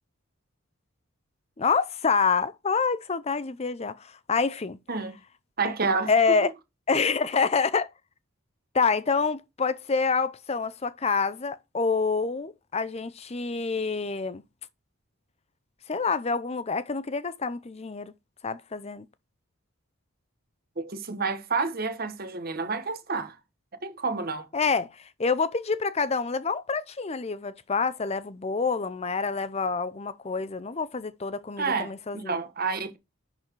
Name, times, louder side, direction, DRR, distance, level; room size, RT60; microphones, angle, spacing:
voice 1, 1.6-4.8 5.7-5.8 6.1-6.5 6.9-7.9 8.7-14.4 15.9-18.1 18.4-19.1 24.5-32.4, left 5 dB, 30° left, 0.5 m, -27 dB
voice 2, 5.6-6.4 20.8-23.4 23.8-24.5 31.6-33.0, right 4 dB, 45° right, 1.2 m, -29 dB
10.5 x 4.1 x 4.5 m
head